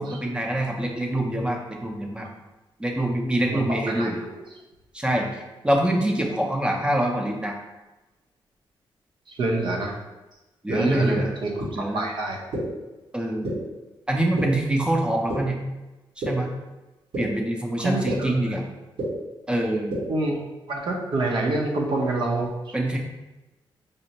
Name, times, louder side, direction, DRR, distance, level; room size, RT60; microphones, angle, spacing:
voice 1, 0.0-2.3 2.8-4.2 4.9-7.6 10.6-11.3 11.7-12.0 13.1-13.5 14.1-15.6 16.3-16.5 17.2-18.6 19.5-19.9 22.7-23.0, right 1 dB, 10° right, 1 dB, 0.5 m, -25 dB
voice 2, 3.5-4.4 9.3-10.0 10.7-11.5 11.8-12.4 17.8-18.4 20.1-22.7, right 2 dB, 60° right, 0 dB, 0.7 m, -27 dB
sound 1, 11.6-11.7 12.5-12.6 13.4-13.5 14.4-14.5 15.3-15.4 16.2-16.3 17.1-17.2 18.1-18.2 19.0-19.1 19.9-20.0, right 1 dB, 80° right, 1.4 m, -28 dB
5.1 x 2.1 x 2.8 m, 1.1 s
cardioid pair, 115°, 9 cm